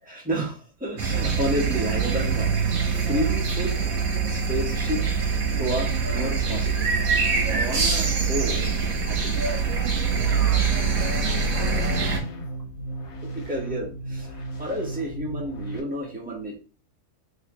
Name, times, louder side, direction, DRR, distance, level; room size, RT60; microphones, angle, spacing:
voice 1, 0.0-3.8 4.2-5.0 5.6-8.7 9.0-9.4 13.2-16.6, equal, 5° right, -3 dB, 1.2 m, -31 dB
sound 1, 1.0-12.2, right 5 dB, 70° right, 1.4 m, -24 dB
voice 2, 10.2-12.4, equal, 30° right, -3 dB, 0.8 m, -41 dB
sound 2, 10.5-15.8, right 2 dB, 75° left, 1.5 m, -35 dB
3.4 x 3.3 x 3.0 m, 0.36 s
omnidirectional pair, 1.5 m